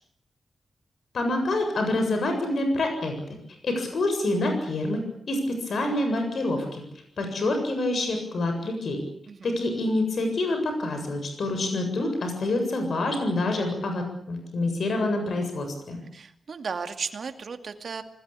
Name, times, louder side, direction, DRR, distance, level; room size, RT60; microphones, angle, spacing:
voice 1, 1.1-3.1 3.6-5.0 5.3-6.8 7.2-9.0 9.4-16.0, left 2 dB, 60° left, 5 dB, 7.7 m, -27 dB
voice 2, 9.3-9.6 16.1-18.0, right 5 dB, 50° right, 7 dB, 2.5 m, -35 dB
27.0 x 21.0 x 8.7 m, 0.70 s
wide cardioid pair, 170°, 0 cm